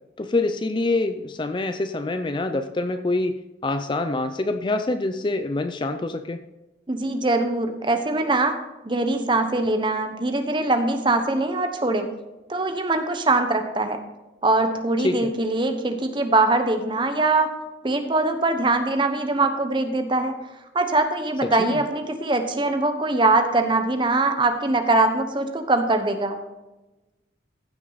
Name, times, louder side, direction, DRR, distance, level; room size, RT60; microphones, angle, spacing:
voice 1, 0.2-6.4 15.0-15.3 21.4-21.8, left 2 dB, 25° left, 9 dB, 0.4 m, -25 dB
voice 2, 6.9-8.6 8.8-12.1 12.5-14.0 14.4-17.5 17.8-20.3 20.7-26.4, right 2 dB, 25° right, 7 dB, 0.9 m, -22 dB
15.0 x 6.2 x 4.0 m, 1.0 s
head